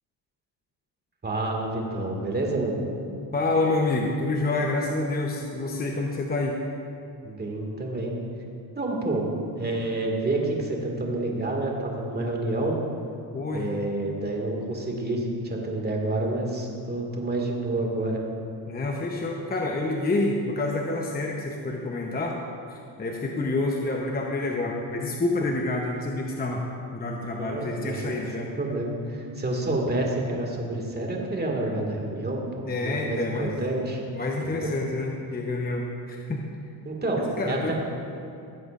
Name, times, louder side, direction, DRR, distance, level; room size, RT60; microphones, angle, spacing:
voice 1, 1.2-2.8 7.2-8.1 8.8-9.3 9.6-12.8 13.5-18.2 27.4-32.4 32.8-34.0 34.4-34.7 36.8-37.7, right 2 dB, 20° right, 0 dB, 2.1 m, -28 dB
voice 2, 3.3-6.6 13.3-13.7 18.7-22.4 22.7-26.6 26.9-28.5 32.6-33.5 34.1-36.4 37.4-37.7, left 2 dB, 20° left, 1 dB, 0.9 m, -28 dB
16.5 x 7.8 x 2.5 m, 2.6 s
supercardioid pair, 75°, 47 cm